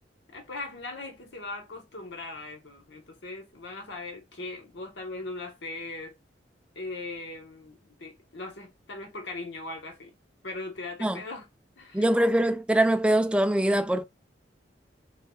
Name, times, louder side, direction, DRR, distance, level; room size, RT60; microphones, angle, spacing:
voice 1, 0.3-6.1 6.7-10.1 10.4-11.4 11.8-12.0, left 2 dB, 75° left, 1.3 m, -39 dB
voice 2, 11.9-14.0, right 1 dB, 5° right, 0.4 m, -23 dB
5.5 x 2.4 x 2.3 m
head